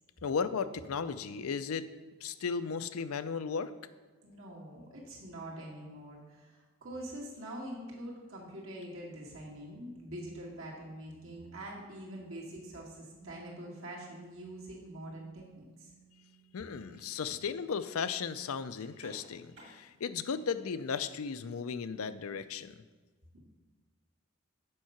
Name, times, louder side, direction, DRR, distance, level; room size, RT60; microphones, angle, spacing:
voice 1, 0.2-1.9 2.2-3.7 16.5-22.7, left 6 dB, 90° left, 12 dB, 0.5 m, -35 dB
voice 2, 4.2-15.9 16.9-17.0 23.3-23.4, right 1 dB, 75° right, -3 dB, 2.1 m, -45 dB
Piano, 13.2-20.5, right 8 dB, 30° right, 0.5 m, -62 dB
sound 1, 16.5-22.8, equal, 55° right, 2.2 m, -61 dB
7.6 x 5.5 x 5.8 m, 1.4 s
head